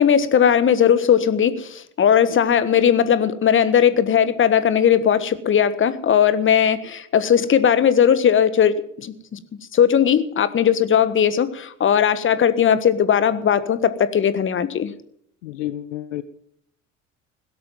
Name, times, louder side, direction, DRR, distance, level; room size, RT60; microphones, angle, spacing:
voice 1, 0.0-9.4 9.7-14.9, left 8 dB, 30° left, 14 dB, 1.4 m, -18 dB
voice 2, 15.4-16.2, left 14 dB, 70° left, 14 dB, 0.8 m, -30 dB
17.0 x 12.5 x 5.6 m, 0.67 s
figure-of-eight pair, 60°, 39 cm